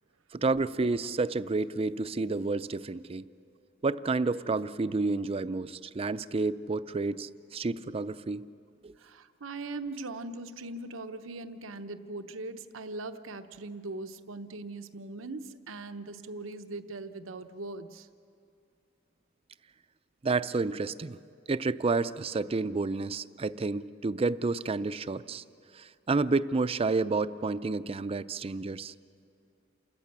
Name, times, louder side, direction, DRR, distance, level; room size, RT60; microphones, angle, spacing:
voice 1, 0.3-3.3 3.8-8.5 8.8-8.9 20.2-21.2 21.5-25.4 25.7-28.9, right 3 dB, 30° right, 14 dB, 0.4 m, -30 dB
voice 2, 9.0-18.1, right 2 dB, 90° right, 9 dB, 0.8 m, -40 dB
28.5 x 14.0 x 8.7 m, 2.4 s
head